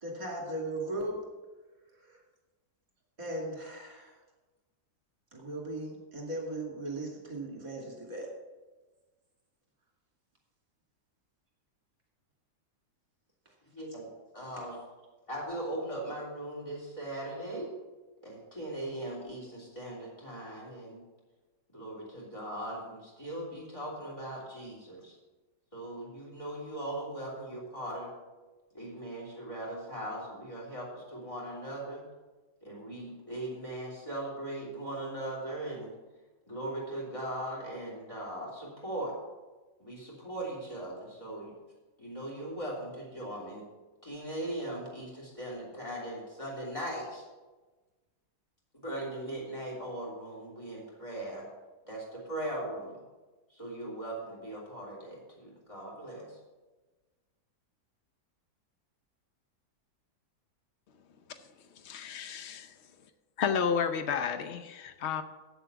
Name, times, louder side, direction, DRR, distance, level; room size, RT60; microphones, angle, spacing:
voice 1, 0.0-1.2 2.0-2.2 3.2-4.2 5.3-8.3, right 1 dB, 25° right, -2 dB, 2.6 m, -37 dB
voice 2, 13.7-14.1 14.3-14.8 15.3-17.7 18.2-21.0 21.7-25.2 25.7-28.1 28.7-32.0 32.6-35.9 36.5-39.1 39.8-41.5 42.0-43.6 44.0-47.2 48.7-51.5 51.9-53.0 53.5-56.4, right 1 dB, 20° left, -3 dB, 3.3 m, -39 dB
voice 3, 61.8-62.7 63.4-65.2, left 7 dB, 55° left, 10 dB, 0.8 m, -31 dB
8.4 x 7.4 x 6.9 m, 1.2 s
omnidirectional pair, 1.8 m